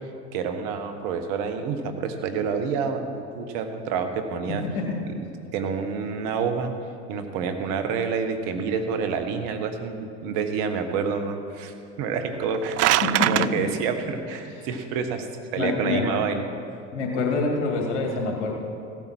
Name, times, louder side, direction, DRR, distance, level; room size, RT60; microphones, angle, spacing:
voice 1, 0.3-4.6 5.5-6.7 7.1-12.8 13.3-15.3 15.5-16.4, right 6 dB, 70° right, 7 dB, 1.4 m, -28 dB
voice 2, 4.5-5.0 13.0-13.6 14.5-14.7 15.5-16.1 16.9-18.5, left 3 dB, 80° left, 0 dB, 2.5 m, -26 dB
sound 1, 12.3-13.5, right 16 dB, 45° right, 0.4 m, -22 dB
16.0 x 8.9 x 6.0 m, 2.5 s
hypercardioid pair, 70°, 35 cm